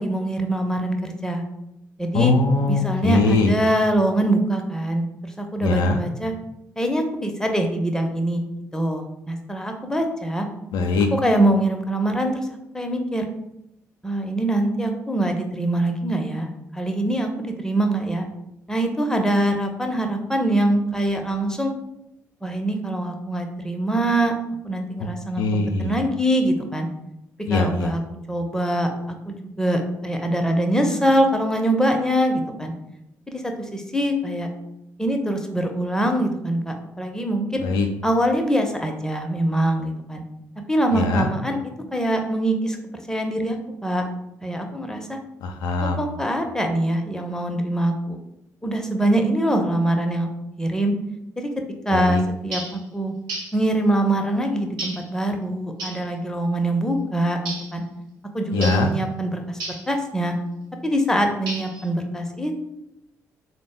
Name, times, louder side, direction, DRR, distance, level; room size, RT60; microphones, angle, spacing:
voice 1, 0.0-1.4 2.0-2.3 2.7-5.1 5.4-6.3 6.8-8.5 8.7-10.5 11.1-12.5 12.7-13.2 14.0-16.5 16.7-18.2 18.7-21.7 22.4-24.4 24.6-25.4 25.8-26.9 27.5-28.0 28.3-28.9 29.3-32.7 33.3-34.5 35.0-37.6 38.0-40.2 40.7-41.6 41.9-42.8 43.1-43.6 43.8-44.0 44.4-45.2 45.8-48.2 48.6-50.3 50.6-50.9 51.4-51.5 51.8-53.1 53.5-57.4 57.7-57.8 58.3-59.6 59.9-60.4 60.8-62.6, right 1 dB, 5° left, 4 dB, 0.6 m, -23 dB
voice 2, 2.1-3.5 5.6-6.0 10.7-11.1 25.4-25.9 27.5-27.9 37.6-37.9 40.9-41.3 45.6-46.0 51.9-52.2 58.5-58.9, left 3 dB, 70° left, 4 dB, 0.3 m, -21 dB
sound 1, 52.5-52.8 53.3-53.6 54.8-55.1 55.8-56.1 57.4-57.7 58.6-58.9 59.6-59.9 61.5-61.9, right 2 dB, 70° right, 1.0 m, -32 dB
3.7 x 2.0 x 3.6 m, 0.84 s
hypercardioid pair, 40°, 8 cm